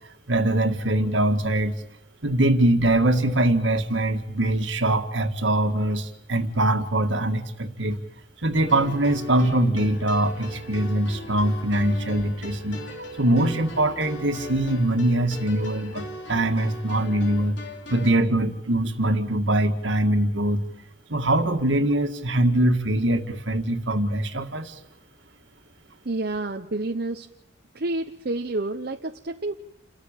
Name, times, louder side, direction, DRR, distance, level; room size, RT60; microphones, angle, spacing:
voice 1, 0.3-1.8 2.2-8.0 8.4-12.8 13.2-17.6 17.9-20.6 21.1-24.8, right 1 dB, 70° right, 7 dB, 1.9 m, -23 dB
sound 1, 8.5-18.1, left 1 dB, 65° left, 3.0 m, -39 dB
voice 2, 26.0-27.3 27.7-29.5, right 2 dB, 50° right, 5 dB, 0.9 m, -29 dB
28.5 x 13.5 x 8.9 m, 0.83 s
head